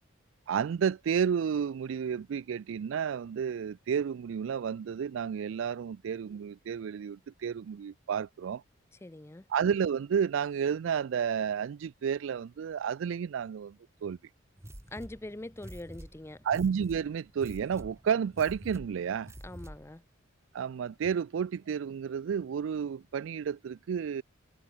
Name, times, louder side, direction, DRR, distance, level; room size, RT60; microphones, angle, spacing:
voice 1, 0.5-8.6 9.5-13.8 14.0-14.2 16.4-19.3 20.5-24.2, right 7 dB, 70° right, 0.3 m, -31 dB
voice 2, 8.9-9.5 14.9-16.4 19.4-20.0, left 1 dB, 15° left, 0.5 m, -43 dB
sound 1, 14.6-20.0, right 1 dB, 15° right, 1.2 m, -48 dB
head